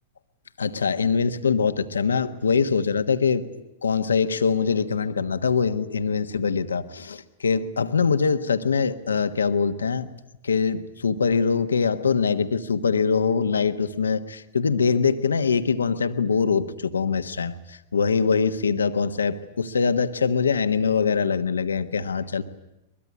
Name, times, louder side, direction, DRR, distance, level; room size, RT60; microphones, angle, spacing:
voice 1, 0.6-10.1 10.4-22.4, left 5 dB, 90° left, 9 dB, 1.4 m, -23 dB
23.0 x 22.0 x 9.8 m, 0.91 s
hypercardioid pair, 105°, 0 cm